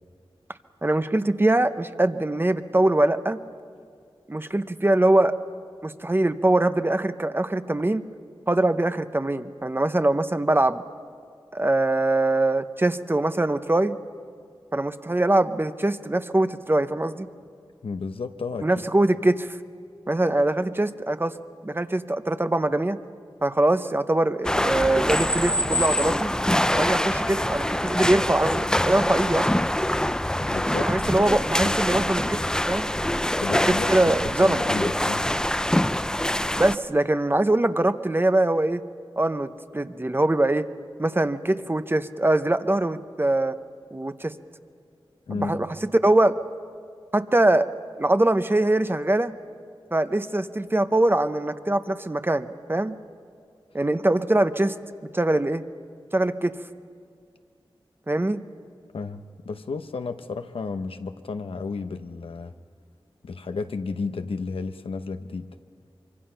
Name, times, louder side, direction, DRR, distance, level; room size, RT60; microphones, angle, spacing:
voice 1, 0.8-3.4 4.3-5.3 5.8-8.0 8.5-10.8 11.5-14.0 14.7-17.3 18.6-19.5 20.1-21.4 21.6-23.0 23.4-26.3 26.8-29.5 30.7-32.4 32.7-32.9 33.5-34.6 36.6-38.8 39.2-40.7 41.0-43.6 43.9-44.4 45.3-45.7 46.0-46.4 47.1-47.7 48.0-49.3 49.9-52.9 53.7-54.7 55.1-55.6 56.1-56.6 58.1-58.4, right 1 dB, 25° right, 11 dB, 0.8 m, -22 dB
voice 2, 17.8-18.7 30.4-31.1 31.6-31.8 33.4-33.9 34.4-35.2 45.3-45.6 58.9-62.5 63.2-65.5, left 4 dB, 90° left, 8 dB, 0.8 m, -32 dB
sound 1, 24.4-36.8, left 1 dB, 10° left, 0.5 m, -24 dB
24.5 x 24.0 x 5.7 m, 2.2 s
wide cardioid pair, 60°, 9 cm